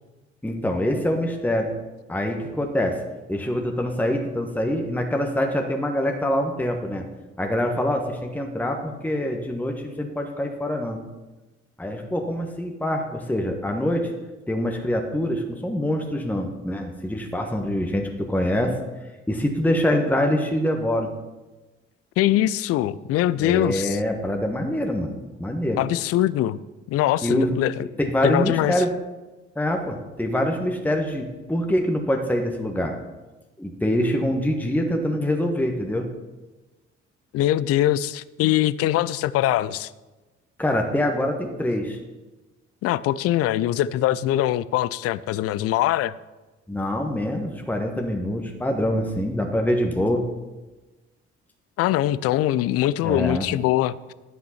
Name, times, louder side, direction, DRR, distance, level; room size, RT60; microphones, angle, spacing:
voice 1, 0.4-1.7 2.1-3.0 3.3-7.0 7.4-11.0 11.8-14.1 14.5-18.8 19.3-21.1 23.4-25.8 27.2-27.5 28.1-28.9 29.5-33.0 33.6-36.1 40.6-42.0 46.7-50.3 53.0-53.4, left 1 dB, 5° left, 3 dB, 1.4 m, -25 dB
voice 2, 22.2-24.0 25.8-26.6 26.9-27.9 28.2-28.8 37.3-39.9 42.8-46.1 51.8-54.1, left 13 dB, 45° left, 18 dB, 0.5 m, -22 dB
12.5 x 5.9 x 5.8 m, 1.1 s
figure-of-eight pair, 50°, 34 cm